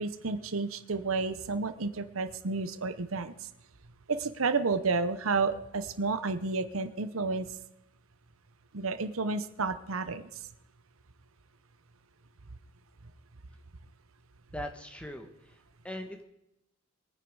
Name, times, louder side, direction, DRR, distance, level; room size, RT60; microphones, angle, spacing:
voice 1, 0.0-3.3 4.1-7.5 8.7-10.3, right 4 dB, 80° right, 11 dB, 0.9 m, -31 dB
voice 2, 14.5-16.2, left 1 dB, 5° left, 5 dB, 1.6 m, -41 dB
22.5 x 9.5 x 4.8 m, 0.85 s
head